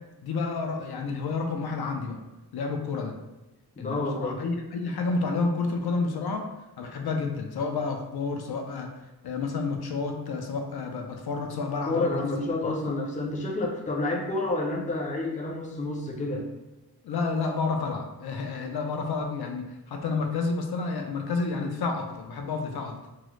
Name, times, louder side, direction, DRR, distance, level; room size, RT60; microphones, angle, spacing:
voice 1, 0.2-2.2 2.5-3.1 3.8-6.5 6.8-8.9 9.2-12.2 17.0-22.9, left 4 dB, 75° left, 3 dB, 0.5 m, -30 dB
voice 2, 3.8-4.4 11.9-16.5, left 2 dB, 20° left, -1 dB, 0.4 m, -29 dB
3.7 x 2.0 x 3.0 m, 1.0 s
wide cardioid pair, 150°, 39 cm